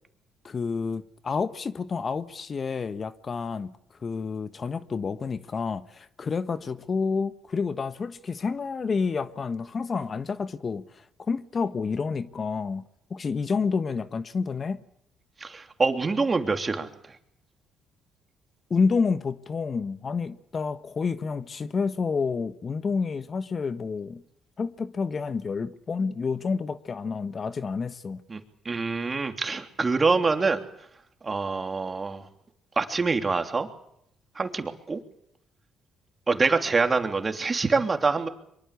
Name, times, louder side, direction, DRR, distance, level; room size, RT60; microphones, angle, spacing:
voice 1, 0.4-3.7 4.0-14.8 18.7-24.2 24.6-28.2, left 5 dB, 45° left, 1.3 m, -29 dB
voice 2, 15.4-17.2 28.3-30.6 31.2-32.2 32.7-33.7 34.3-35.0 36.3-38.3, right 4 dB, 35° right, 3.2 m, -25 dB
24.0 x 23.0 x 8.4 m
hypercardioid pair, 55°, 0 cm